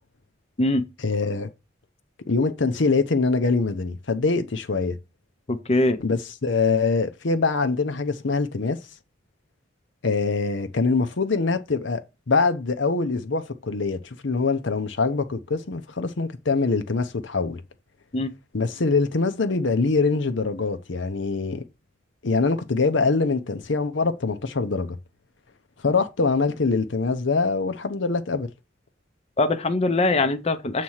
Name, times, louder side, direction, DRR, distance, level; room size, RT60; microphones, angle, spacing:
voice 1, 1.0-1.5 2.3-5.0 6.0-8.8 10.0-14.0 14.2-17.6 18.5-21.6 22.2-25.0 25.8-28.5, left 4 dB, 75° left, 0.8 m, -24 dB
voice 2, 5.5-6.0 18.1-18.3 29.4-30.8, left 2 dB, 35° left, 0.6 m, -22 dB
7.5 x 3.1 x 5.6 m
head